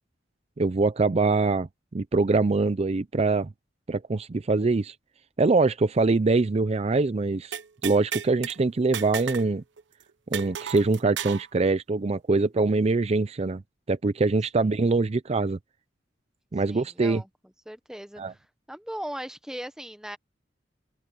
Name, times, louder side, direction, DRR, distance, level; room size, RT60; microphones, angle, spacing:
voice 1, 0.6-1.7 1.9-3.5 3.9-4.9 5.4-9.6 10.3-13.6 13.9-15.6 16.5-17.2 18.2-18.3, right 3 dB, 35° right, 0.5 m, -24 dB
sound 1, 7.5-8.6 8.9-9.5 9.8-9.9 10.3-11.5, right 8 dB, 85° right, 0.9 m, -33 dB
voice 2, 16.7-17.3 17.7-18.4 18.7-20.2, equal, 5° right, 1.2 m, -38 dB
open air
head